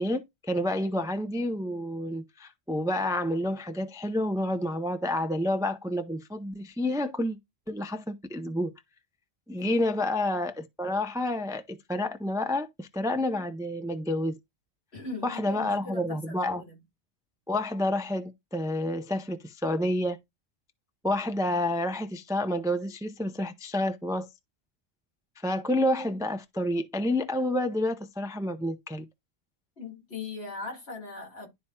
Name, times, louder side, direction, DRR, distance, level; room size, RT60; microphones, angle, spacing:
voice 1, 0.0-7.4 7.7-8.7 9.5-14.4 15.2-16.6 17.5-20.2 21.0-24.3 25.4-29.1, left 1 dB, 5° right, 0.4 m, -29 dB
voice 2, 14.9-16.8 29.8-31.5, left 3 dB, 70° left, 2.4 m, -40 dB
11.5 x 4.2 x 2.3 m
omnidirectional pair, 1.1 m